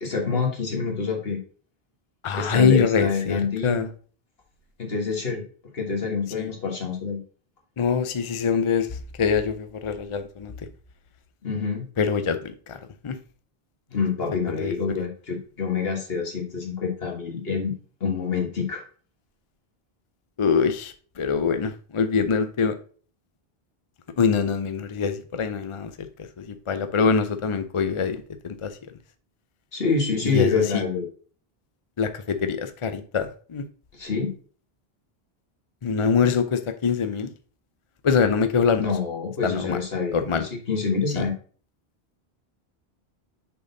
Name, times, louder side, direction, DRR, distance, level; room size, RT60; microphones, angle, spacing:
voice 1, 0.0-1.4 2.3-3.9 4.8-5.4 5.7-7.2 11.4-11.9 13.9-17.8 18.0-18.8 29.7-31.1 33.9-34.3 38.8-41.3, left 5 dB, 70° left, 1 dB, 1.8 m, -26 dB
voice 2, 2.2-3.9 6.4-6.5 7.8-8.9 9.2-10.5 12.0-12.8 13.0-13.1 14.6-14.7 20.4-22.7 24.2-25.9 26.2-28.2 28.4-28.7 30.3-30.8 32.0-33.6 35.8-37.3 38.0-38.9 39.4-39.8 40.1-40.5 41.1-41.2, left 6 dB, 40° left, 9 dB, 0.5 m, -24 dB
6.6 x 4.0 x 3.9 m, 0.41 s
omnidirectional pair, 1.0 m